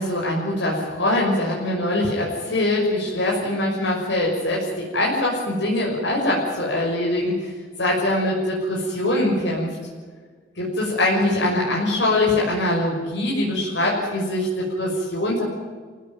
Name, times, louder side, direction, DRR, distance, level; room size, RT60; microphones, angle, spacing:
voice 1, 0.0-7.5 7.8-9.7 10.6-15.4, left 1 dB, 85° left, -3 dB, 6.2 m, -23 dB
27.5 x 17.0 x 9.2 m, 1.5 s
head